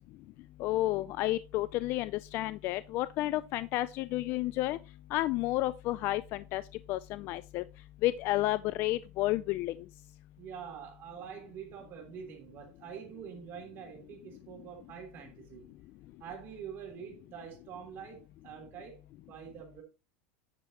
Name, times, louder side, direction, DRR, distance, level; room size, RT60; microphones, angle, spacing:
voice 1, 0.6-4.8 5.1-6.6 6.9-7.6 8.0-9.8, left 16 dB, 40° left, 0.3 m, -31 dB
voice 2, 10.4-15.7 16.2-19.0 19.3-19.8, right 7 dB, 40° right, 3.0 m, -45 dB
9.3 x 6.7 x 2.9 m
supercardioid pair, 155°, 6 cm